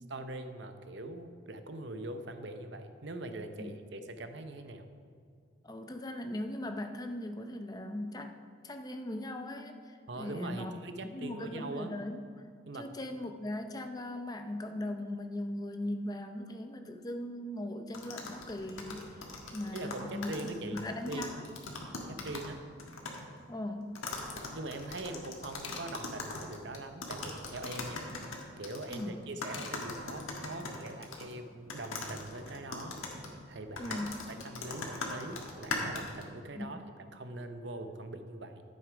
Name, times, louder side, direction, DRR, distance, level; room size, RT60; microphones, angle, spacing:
voice 1, 0.1-4.9 10.1-11.9 12.7-12.9 19.7-21.3 22.1-22.6 24.5-28.0 28.6-33.0 33.5-36.8 37.1-38.6, right 2 dB, 60° right, 8 dB, 0.7 m, -42 dB
voice 2, 5.6-8.3 8.6-10.7 11.0-12.2 12.8-19.1 19.5-21.5 23.5-24.0 28.9-29.1 33.8-34.1 36.5-36.8, left 1 dB, 20° left, 6 dB, 0.6 m, -39 dB
sound 1, 17.9-22.5 22.8-23.2 23.9-29.0 29.4-31.3 31.7-36.2, left 3 dB, 90° left, 1.6 m, -40 dB
sound 2, 25.4-25.9 27.1-27.9 29.2-29.7 30.1-30.4, left 5 dB, 70° left, 1.2 m, -45 dB
11.0 x 7.8 x 5.0 m, 2.2 s
head